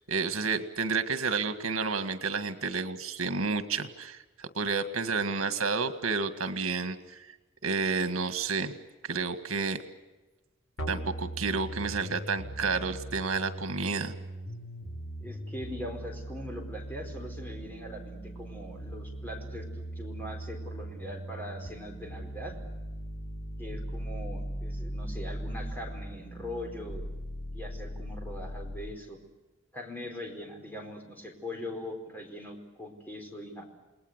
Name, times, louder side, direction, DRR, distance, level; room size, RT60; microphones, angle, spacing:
voice 1, 0.1-7.3 7.6-8.7 9.0-9.8 10.9-14.2, right 4 dB, 85° right, 10 dB, 1.9 m, -30 dB
sound 1, 10.8-28.8, right 1 dB, 70° left, 5.0 m, -39 dB
voice 2, 15.2-22.5 23.6-27.0 27.5-29.2 29.7-33.7, left 1 dB, 10° left, 2 dB, 4.6 m, -41 dB
29.0 x 20.0 x 8.1 m, 1.1 s
head